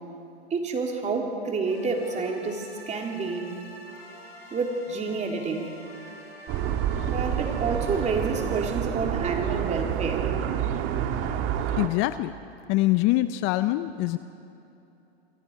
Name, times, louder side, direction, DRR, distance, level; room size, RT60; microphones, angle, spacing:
voice 1, 0.5-3.5 4.5-5.7 7.1-10.3, right 4 dB, 20° right, 1 dB, 3.1 m, -29 dB
sound 1, 1.7-8.6, left 1 dB, 75° left, 7.3 m, -46 dB
sound 2, 6.5-11.9, right 9 dB, 40° right, 1.6 m, -28 dB
voice 2, 11.8-12.3 12.7-14.2, left 17 dB, 40° left, 12 dB, 0.6 m, -24 dB
28.5 x 23.0 x 4.7 m, 2.9 s
hypercardioid pair, 115°, 31 cm